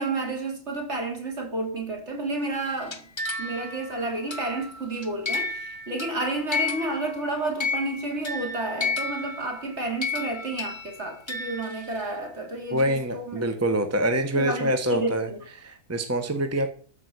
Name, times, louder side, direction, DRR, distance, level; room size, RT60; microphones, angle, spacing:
voice 1, 0.0-3.1 3.4-13.5 14.3-15.4, right 2 dB, 50° right, 3.1 m, -31 dB
sound 1, 2.7-7.3 7.6-12.1, left 3 dB, 20° left, 0.9 m, -32 dB
voice 2, 12.7-15.3 15.6-16.7, right 1 dB, 10° right, 1.2 m, -25 dB
13.5 x 5.2 x 8.2 m
omnidirectional pair, 1.5 m